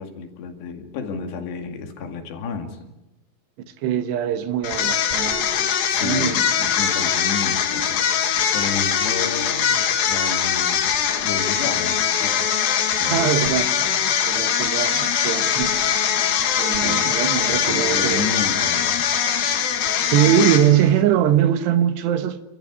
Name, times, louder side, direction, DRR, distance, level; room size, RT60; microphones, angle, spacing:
voice 1, 0.0-2.9 5.9-10.9 11.2-12.6 13.0-13.6 16.8-17.2 17.5-19.0, left 5 dB, 90° left, 4.5 m, -32 dB
voice 2, 3.8-5.7 6.0-6.4 13.0-15.7 16.6-18.3 20.1-22.4, right 10 dB, 90° right, 3.5 m, -22 dB
sound 1, 4.6-21.0, left 8 dB, 65° left, 3.3 m, -22 dB
29.5 x 14.0 x 9.7 m
omnidirectional pair, 4.7 m